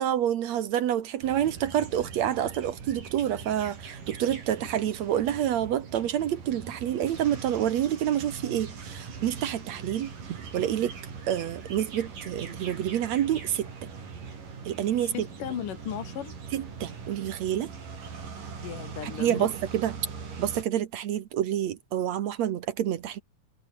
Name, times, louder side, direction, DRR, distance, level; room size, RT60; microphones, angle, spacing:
voice 1, 0.0-10.9 11.3-13.7 14.7-15.3 16.5-17.7 19.0-19.9 20.4-23.2, right 11 dB, 65° right, 2.2 m, -28 dB
sound 1, 1.2-20.6, right 5 dB, 85° right, 6.4 m, -41 dB
voice 2, 15.0-16.4 18.6-19.5, left 9 dB, 80° left, 3.7 m, -36 dB
omnidirectional pair, 3.7 m